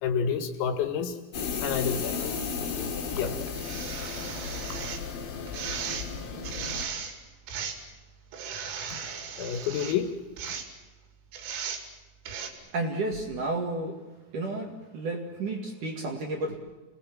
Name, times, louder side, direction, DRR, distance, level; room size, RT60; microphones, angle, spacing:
voice 1, 0.0-1.2 1.6-2.4 3.2-3.4 9.4-10.1 10.5-10.6, left 7 dB, 80° left, 7 dB, 4.5 m, -29 dB
sound 1, 1.3-6.9, left 5 dB, 50° left, 3.5 m, -34 dB
sound 2, 2.4-2.5 3.5-5.0 5.5-6.1 6.4-7.1 7.5-7.9 8.3-10.0 10.4-10.7 11.3-11.8 12.3-12.5, right 7 dB, 75° right, 5.2 m, -36 dB
voice 2, 12.5-14.0 14.3-16.6, right 2 dB, 50° right, 2 dB, 2.7 m, -32 dB
29.0 x 19.5 x 7.5 m, 1.1 s
omnidirectional pair, 6.0 m